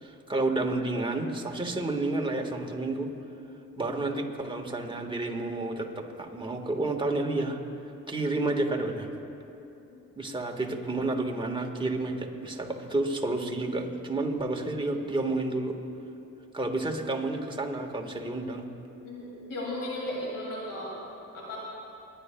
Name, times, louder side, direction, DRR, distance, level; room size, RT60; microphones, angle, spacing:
voice 1, 0.0-3.1 3.8-7.6 8.1-9.1 10.1-15.8 16.5-18.7, right 2 dB, 15° right, 2 dB, 1.5 m, -30 dB
voice 2, 19.0-20.9 21.3-21.6, left 1 dB, 70° left, -4 dB, 2.4 m, -35 dB
30.0 x 10.0 x 2.3 m, 2.8 s
supercardioid pair, 60°, 34 cm